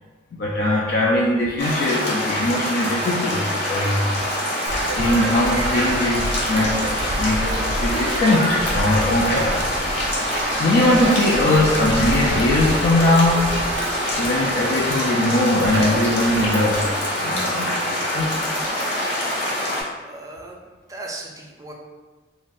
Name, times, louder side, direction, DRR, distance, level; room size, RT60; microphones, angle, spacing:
voice 1, 0.4-4.2 4.9-9.7 10.6-13.6 14.2-16.9 17.2-18.4, left 1 dB, 60° left, -3 dB, 0.3 m, -21 dB
sound 1, 1.6-19.8, left 1 dB, 80° left, 0.9 m, -25 dB
sound 2, 4.7-16.9, right 2 dB, 90° right, 0.4 m, -29 dB
voice 2, 20.0-21.7, right 2 dB, 20° right, -1 dB, 0.4 m, -38 dB
2.4 x 2.0 x 3.8 m, 1.3 s
head